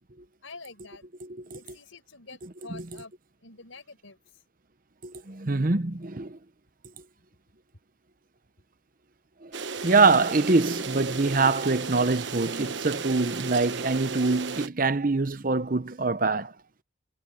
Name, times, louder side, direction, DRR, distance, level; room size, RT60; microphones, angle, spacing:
voice 1, 0.4-1.1 1.5-3.1 3.4-4.2, left 3 dB, 90° left, 5.2 m, -47 dB
voice 2, 5.0-6.4 9.4-16.5, right 3 dB, 45° right, 0.9 m, -24 dB
sound 1, 9.5-14.7, right 4 dB, 65° right, 1.2 m, -34 dB
head